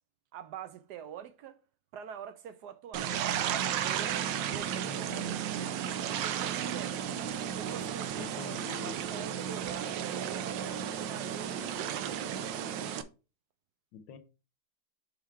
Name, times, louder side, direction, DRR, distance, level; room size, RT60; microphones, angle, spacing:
voice 1, 0.3-1.6 1.9-3.6 3.8-7.0 7.5-12.7, right 8 dB, 70° right, 1.1 m, -46 dB
sound 1, 2.9-13.0, right 9 dB, 90° right, 1.4 m, -34 dB
voice 2, 4.8-5.4 8.2-9.4 13.9-14.2, left 6 dB, 80° left, 1.6 m, -46 dB
7.2 x 3.6 x 4.5 m
omnidirectional pair, 2.0 m